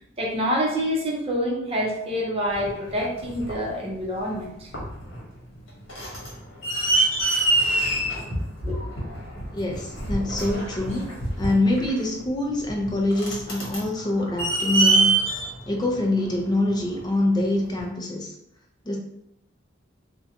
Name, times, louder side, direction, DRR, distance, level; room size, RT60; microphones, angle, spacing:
voice 1, 0.2-4.7 8.3-8.8, equal, 30° right, -2 dB, 0.6 m, -27 dB
sound 1, 2.5-3.7 4.3-4.4 4.7-5.2 5.5-17.0 17.8-17.9, right 2 dB, 70° left, 1.0 m, -25 dB
voice 2, 9.5-15.2 15.7-18.3 18.8-19.0, left 1 dB, 20° left, 0 dB, 0.5 m, -25 dB
2.6 x 2.2 x 2.7 m, 0.80 s
head